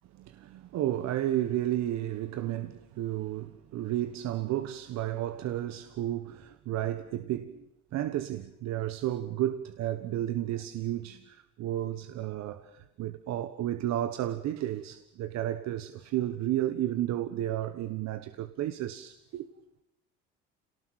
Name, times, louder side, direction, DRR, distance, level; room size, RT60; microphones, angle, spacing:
voice 1, 0.2-7.6 7.9-19.5, right 13 dB, 65° right, 1.3 m, -32 dB
27.5 x 19.0 x 8.8 m
supercardioid pair, 95°, 29 cm